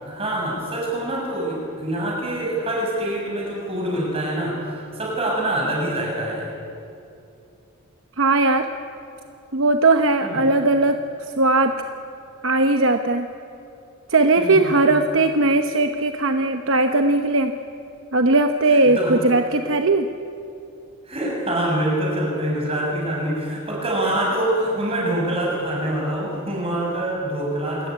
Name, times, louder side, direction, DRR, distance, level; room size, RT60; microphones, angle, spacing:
voice 1, 0.0-6.5 10.2-10.5 14.4-14.8 18.7-19.2 21.1-27.9, right 1 dB, 25° right, -2 dB, 6.8 m, -25 dB
voice 2, 8.2-8.7 9.5-11.0 11.4-11.7 12.4-13.3 14.1-17.5 18.1-20.1, right 2 dB, 60° right, 6 dB, 0.9 m, -18 dB
26.5 x 14.5 x 9.6 m, 2.7 s
head